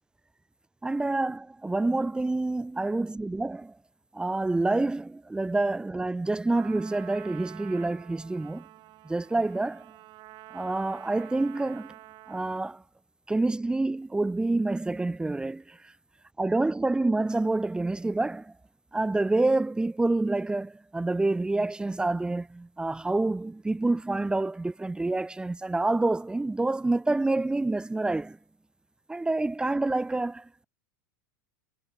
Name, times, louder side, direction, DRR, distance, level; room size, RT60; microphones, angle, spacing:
voice 1, 0.8-3.7 4.1-8.7 9.0-9.9 10.5-11.9 12.3-12.8 13.3-15.8 16.4-18.5 18.9-28.4 29.1-30.6, right 2 dB, 10° right, 1.1 m, -27 dB
Trumpet, 6.5-12.8, right 17 dB, 45° right, 6.7 m, -48 dB
hypercardioid pair, 90°, 10 cm